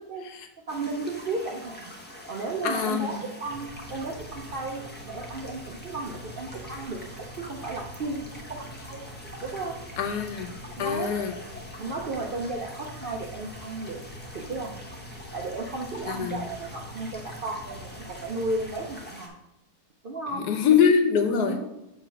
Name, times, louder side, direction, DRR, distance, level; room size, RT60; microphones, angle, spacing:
sound 1, 0.7-19.3, left 1 dB, 10° left, 0.6 m, -45 dB
voice 1, 0.7-1.9 2.3-9.0 9.4-9.8 10.8-11.2 11.8-14.0 14.3-14.8 15.3-19.4 20.0-20.5 21.2-21.7, right 2 dB, 60° right, 0 dB, 0.6 m, -34 dB
voice 2, 2.6-3.1 10.0-10.5 10.8-11.3 16.1-16.4 20.4-21.6, left 7 dB, 85° left, 7 dB, 1.3 m, -23 dB
sound 2, 3.4-18.9, equal, 65° left, 1.3 m, -45 dB
6.9 x 3.2 x 5.8 m, 0.92 s
omnidirectional pair, 1.7 m